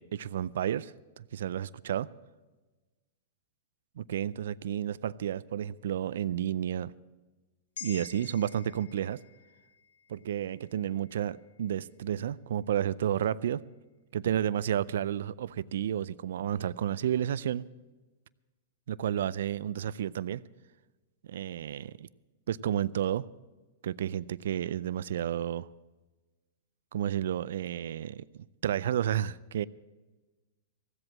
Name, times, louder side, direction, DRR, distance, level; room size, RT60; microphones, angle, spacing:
voice 1, 0.0-2.1 4.0-6.9 7.8-9.2 10.1-13.6 14.1-17.7 18.9-20.4 21.3-22.1 22.5-23.3 23.8-25.7 26.9-29.6, right 10 dB, 75° right, 20 dB, 0.4 m, -31 dB
sound 1, 7.8-12.2 12.6-12.8, left 9 dB, 80° left, 1.0 m, -50 dB
16.0 x 7.9 x 8.6 m, 1.2 s
hypercardioid pair, 130°, 0 cm